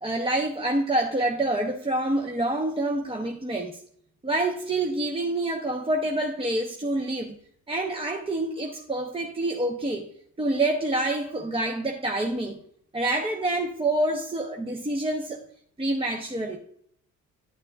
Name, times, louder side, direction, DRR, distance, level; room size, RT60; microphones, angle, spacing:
voice 1, 0.0-3.8 4.2-7.4 7.7-10.1 10.4-12.6 12.9-15.4 15.8-16.6, right 2 dB, 20° right, 2 dB, 0.8 m, -27 dB
11.0 x 6.5 x 2.3 m, 0.64 s
cardioid pair, 90°, 30 cm